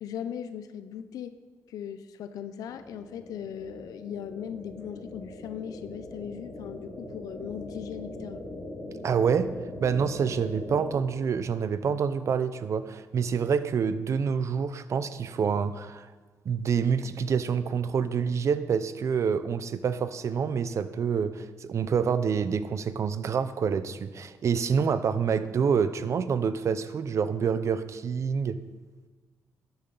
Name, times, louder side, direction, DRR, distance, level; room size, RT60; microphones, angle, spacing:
voice 1, 0.0-1.4 1.7-8.4, left 9 dB, 85° left, 12 dB, 0.5 m, -38 dB
sound 1, 2.6-11.0, left 1 dB, 45° left, 3.6 m, -41 dB
voice 2, 9.0-9.6 9.8-16.1 16.4-28.6, right 6 dB, 55° right, 13 dB, 0.6 m, -27 dB
12.0 x 10.0 x 4.0 m, 1.3 s
cardioid pair, 100°, 6 cm